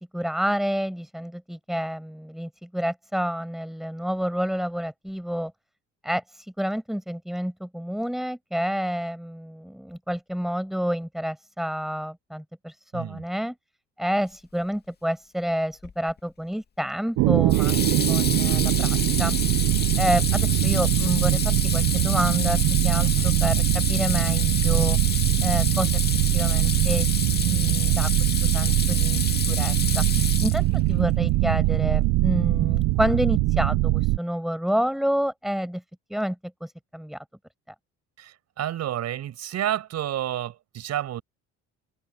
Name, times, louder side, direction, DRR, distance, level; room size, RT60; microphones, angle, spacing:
voice 1, 0.1-5.5 6.0-13.5 14.0-17.8 18.1-19.4 20.0-25.0 25.4-26.0 26.3-30.0 30.4-35.8 36.1-36.4 36.6-37.2, equal, ahead, 7.5 m, -29 dB
Water tap faucet / Sink (filling or washing), 15.8-16.2 17.5-30.9, left 6 dB, 35° left, 2.4 m, -29 dB
sound 1, 17.2-34.2, right 18 dB, 85° right, 1.2 m, -22 dB
voice 2, 23.0-23.3 38.2-41.2, right 11 dB, 60° right, 6.6 m, -30 dB
open air
cardioid pair, 115°, 30 cm